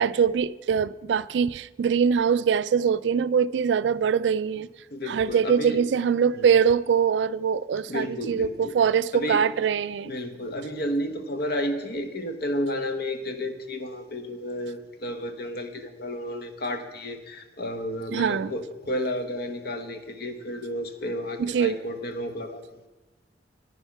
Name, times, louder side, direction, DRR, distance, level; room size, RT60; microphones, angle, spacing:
voice 1, 0.0-4.7 5.1-10.1 18.1-18.5 21.4-21.8, right 7 dB, 70° right, 0.3 m, -23 dB
voice 2, 4.9-5.8 6.3-6.5 7.9-8.7 9.1-9.4 10.0-22.6, left 1 dB, 60° left, 1.1 m, -32 dB
9.9 x 9.8 x 5.7 m
head